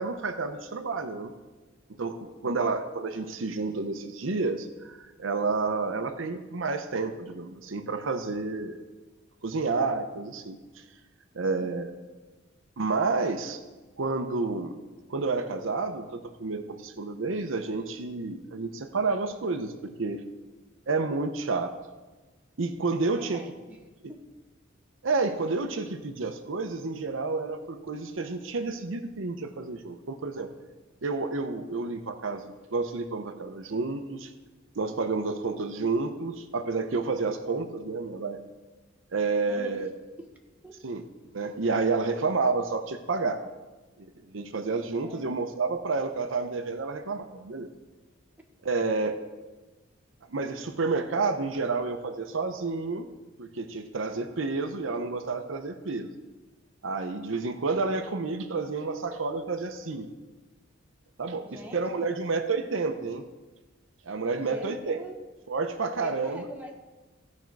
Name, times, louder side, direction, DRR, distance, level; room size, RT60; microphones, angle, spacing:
voice 1, 0.0-1.3 1.9-8.8 9.4-10.6 11.3-11.9 12.8-13.6 14.0-14.8 15.1-20.3 20.9-21.8 22.6-23.4 25.0-30.5 31.0-34.3 34.8-38.4 39.1-39.9 40.8-41.1 41.3-43.4 44.0-47.7 48.6-49.2 50.3-53.1 53.4-56.1 56.8-60.1 61.2-63.3 64.1-65.0 65.5-66.4, right 3 dB, 70° right, 8 dB, 0.7 m, -30 dB
voice 2, 23.2-23.8 24.1-24.2 39.5-39.8 40.2-40.3 40.6-40.7 45.0-45.5 61.4-62.2 64.4-65.2 66.0-66.7, right 1 dB, 10° right, 1 dB, 1.0 m, -44 dB
15.5 x 5.3 x 4.7 m, 1.2 s
head